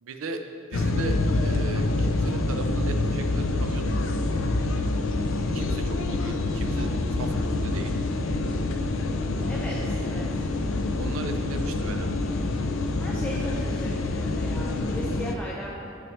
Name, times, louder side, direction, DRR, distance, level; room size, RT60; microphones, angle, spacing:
voice 1, 0.0-0.4 0.7-3.8 5.5-7.9 11.0-12.1, right 3 dB, 80° right, 6 dB, 0.5 m, -37 dB
sound 1, 0.7-15.3, left 2 dB, 70° left, 0.4 m, -26 dB
voice 2, 4.7-5.1 9.5-10.2 13.0-15.9, equal, 5° left, -5 dB, 0.4 m, -38 dB
7.6 x 6.1 x 3.1 m, 2.7 s
head